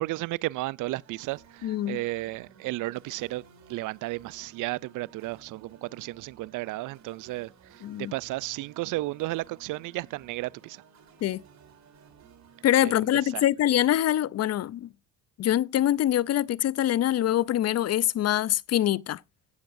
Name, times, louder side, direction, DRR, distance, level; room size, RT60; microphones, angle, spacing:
voice 1, 0.0-3.4 3.7-10.8 12.8-12.9 13.3-13.4, right 19 dB, 85° right, 0.5 m, -33 dB
sound 1, 0.8-13.2, right 7 dB, 65° right, 3.3 m, -55 dB
voice 2, 1.6-2.0 7.8-8.1 11.2-11.4 12.6-14.9 15.4-19.2, left 12 dB, 55° left, 0.5 m, -24 dB
17.0 x 7.8 x 2.6 m
cardioid pair, 90°, 30 cm